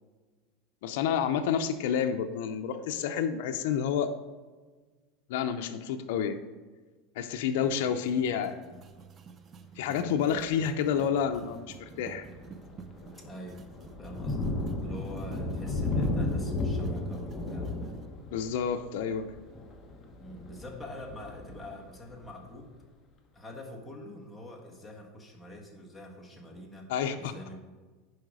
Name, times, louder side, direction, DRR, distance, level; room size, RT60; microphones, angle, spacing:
voice 1, 0.8-4.1 5.3-6.4 7.2-8.6 9.8-12.3 18.3-19.3 26.9-27.3, left 8 dB, 70° left, 6 dB, 0.6 m, -29 dB
sound 1, 7.6-18.1, right 5 dB, 25° right, 0.5 m, -48 dB
Thunder, 10.4-10.7 11.3-11.4 11.9-22.4, left 2 dB, 25° left, 1.0 m, -35 dB
voice 2, 13.2-13.7 14.0-14.5 14.8-17.9 20.2-22.8 23.3-26.9 27.2-27.7, left 1 dB, 5° left, -2 dB, 1.5 m, -45 dB
10.5 x 4.8 x 4.9 m, 1.4 s
supercardioid pair, 150°, 0 cm